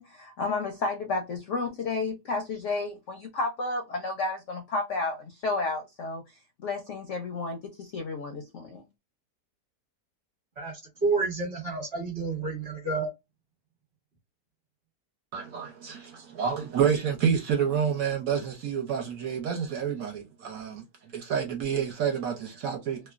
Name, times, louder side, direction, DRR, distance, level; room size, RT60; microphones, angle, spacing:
voice 1, 0.0-6.2 6.6-8.9, left 3 dB, 65° left, 0.7 m, -32 dB
voice 2, 10.6-13.1, right 3 dB, 40° right, 1.2 m, -29 dB
voice 3, 15.3-20.8 21.1-23.0, right 7 dB, 60° right, 1.1 m, -28 dB
3.0 x 2.1 x 2.3 m
omnidirectional pair, 1.8 m